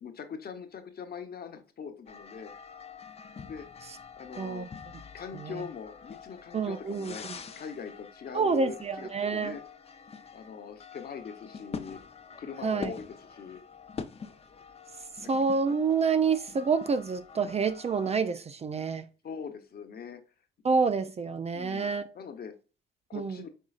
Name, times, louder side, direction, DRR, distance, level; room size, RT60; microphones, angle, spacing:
voice 1, 0.0-2.5 3.5-3.6 4.2-4.7 5.1-7.3 7.6-9.6 10.3-12.0 12.4-13.6 15.2-15.3 19.2-20.2 21.5-22.5 23.1-23.5, left 6 dB, 50° left, 1.0 m, -42 dB
sound 1, 2.1-18.1, left 5 dB, 30° left, 0.6 m, -46 dB
voice 2, 4.4-4.7 5.3-5.6 6.5-7.4 8.3-9.6 12.6-12.9 15.3-19.0 20.6-22.1 23.1-23.4, right 5 dB, 30° right, 0.4 m, -28 dB
5.5 x 3.7 x 2.4 m
cardioid pair, 90°, 20 cm